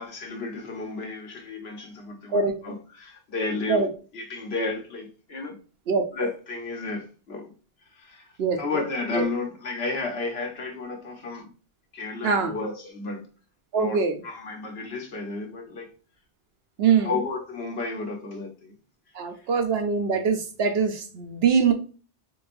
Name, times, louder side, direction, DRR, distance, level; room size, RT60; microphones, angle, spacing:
voice 1, 0.0-3.8 4.1-5.6 6.1-7.5 7.9-8.3 8.6-11.5 11.9-13.3 13.8-15.9 17.0-18.7, left 3 dB, 70° left, 1.1 m, -32 dB
voice 2, 2.3-2.6 3.7-3.9 5.9-6.1 8.4-8.6 9.1-9.3 12.2-12.5 13.7-14.2 16.8-17.1 19.1-21.7, right 5 dB, 70° right, 0.8 m, -23 dB
3.9 x 3.0 x 2.5 m
omnidirectional pair, 1.1 m